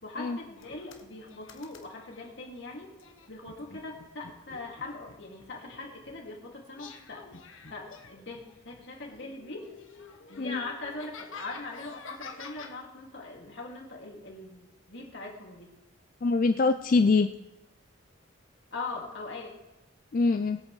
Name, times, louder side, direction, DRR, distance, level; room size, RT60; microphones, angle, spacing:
voice 1, 0.0-2.9 3.3-7.2 7.7-9.7 10.3-15.7 18.7-19.5, left 3 dB, 55° left, -1 dB, 2.4 m, -41 dB
sound 1, 0.6-2.3 3.0-6.3 6.7-8.8 9.1-12.7, left 5 dB, 75° left, 1.2 m, -49 dB
voice 2, 16.2-17.3 20.1-20.6, left 3 dB, 40° left, 8 dB, 0.4 m, -24 dB
21.5 x 8.4 x 3.2 m, 0.96 s
head